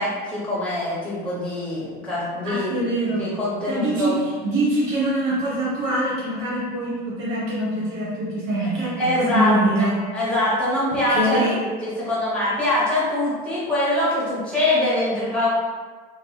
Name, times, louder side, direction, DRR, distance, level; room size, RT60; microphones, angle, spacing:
voice 1, 0.0-2.8 3.1-4.2 8.6-8.7 9.0-9.5 9.8-9.9 10.1-15.5, left 1 dB, 5° left, -8 dB, 1.0 m, -24 dB
voice 2, 2.4-3.3 3.7-10.0 11.1-11.5, right 1 dB, 75° right, -6 dB, 1.1 m, -24 dB
2.9 x 2.1 x 3.1 m, 1.4 s
cardioid pair, 150°, 19 cm